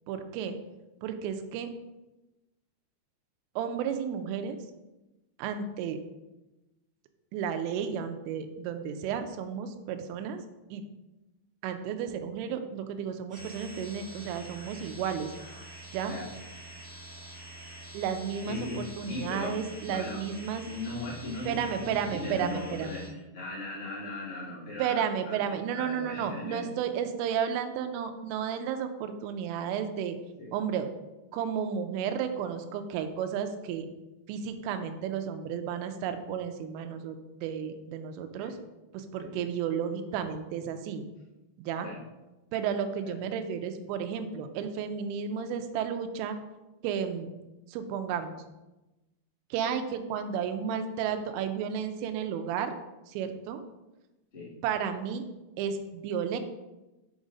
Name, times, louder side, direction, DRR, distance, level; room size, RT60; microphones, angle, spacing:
voice 1, 0.1-0.6 1.0-1.7 3.6-4.6 5.4-6.0 7.3-10.4 10.7-10.8 11.6-15.3 15.9-16.1 17.9-20.6 21.5-23.0 24.8-30.2 30.5-30.9 31.3-33.9 34.3-38.6 38.9-41.1 41.6-41.9 42.5-46.4 46.8-47.3 47.7-48.3 49.5-52.7 53.1-53.6 54.6-55.3 55.6-56.4, right 7 dB, 85° right, 8 dB, 3.1 m, -32 dB
sound 1, 13.3-23.1, right 1 dB, 60° right, 1.1 m, -46 dB
voice 2, 18.4-26.7 30.4-30.5 38.4-38.5 39.2-39.4 41.8-42.0 43.0-43.1 54.3-54.5, left 2 dB, 30° left, -9 dB, 1.1 m, -39 dB
7.1 x 5.0 x 4.0 m, 1.0 s
omnidirectional pair, 5.7 m